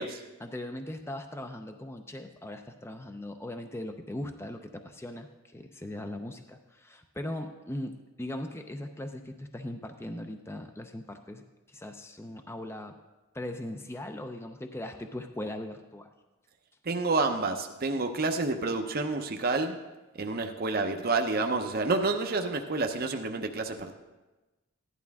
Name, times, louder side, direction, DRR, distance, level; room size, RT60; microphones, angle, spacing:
voice 1, 0.4-11.4 11.7-12.9 13.3-16.1, left 1 dB, 10° left, 6 dB, 0.5 m, -39 dB
voice 2, 16.8-19.8 20.2-23.9, right 3 dB, 45° right, 5 dB, 0.7 m, -29 dB
15.5 x 11.0 x 3.5 m, 1.1 s
head